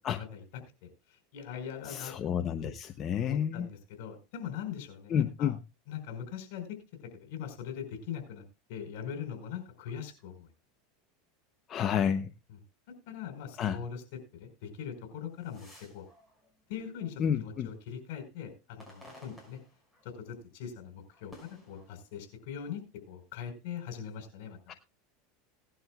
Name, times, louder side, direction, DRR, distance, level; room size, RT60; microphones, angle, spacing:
voice 1, 0.8-2.1 2.6-2.7 3.2-5.5 5.9-6.8 7.1-8.4 8.7-10.5 13.1-14.0 14.4-16.1 16.7-19.6 20.0-24.6, left 8 dB, 70° left, 7 dB, 4.5 m, -41 dB
voice 2, 1.8-3.7 5.1-5.6 11.7-12.3 13.6-13.8 17.2-17.7 24.7-24.8, left 8 dB, 35° left, 9 dB, 0.8 m, -30 dB
sound 1, 15.2-17.6 18.0-20.4 20.7-22.6 23.2-24.1, left 1 dB, 5° left, 6.0 m, -57 dB
18.0 x 11.5 x 2.4 m, 0.27 s
supercardioid pair, 120°, 0 cm